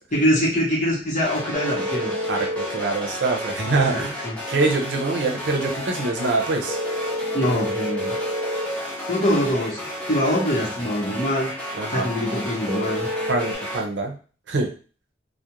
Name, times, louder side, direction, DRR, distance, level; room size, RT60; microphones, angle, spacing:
voice 1, 0.1-2.1 3.9-4.4 7.3-8.2 9.1-9.8 10.1-11.5 11.9-13.1, equal, 45° left, -4 dB, 0.9 m, -23 dB
sound 1, 1.2-13.8, equal, 10° left, 0.7 m, -32 dB
sound 2, 1.5-2.7 6.7-8.7 12.7-13.5, equal, 50° right, 0.7 m, -28 dB
voice 2, 2.3-4.2 4.5-6.8 11.7-12.1 13.3-14.2 14.5-14.7, right 3 dB, 85° right, 2 dB, 0.5 m, -24 dB
2.3 x 2.1 x 2.9 m, 0.39 s
head